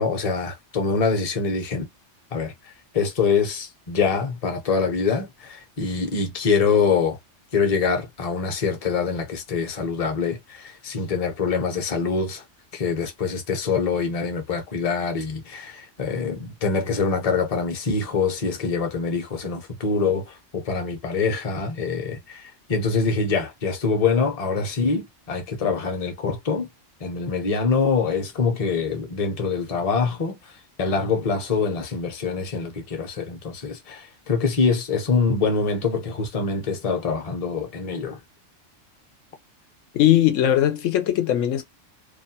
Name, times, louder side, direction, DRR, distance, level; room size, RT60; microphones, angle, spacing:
voice 1, 0.0-1.8 2.3-2.5 2.9-7.2 7.5-12.4 12.7-26.7 27.0-30.4 30.8-38.2, left 5 dB, 35° left, 0.7 m, -24 dB
voice 2, 39.9-41.6, left 12 dB, 85° left, 1.0 m, -19 dB
2.5 x 2.2 x 2.6 m
omnidirectional pair, 1.3 m